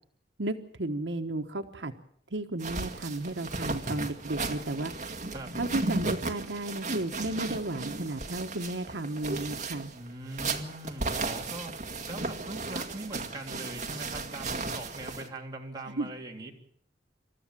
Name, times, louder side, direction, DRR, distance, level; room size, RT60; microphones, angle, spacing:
voice 1, 0.4-1.9 2.3-4.9 5.6-9.9 16.0-16.1, right 2 dB, 80° right, 6 dB, 1.2 m, -33 dB
sound 1, 2.6-15.3, right 3 dB, 45° right, 2.0 m, -35 dB
voice 2, 9.9-16.5, right 1 dB, 25° right, 0 dB, 3.1 m, -41 dB
27.5 x 13.5 x 7.5 m, 0.65 s
head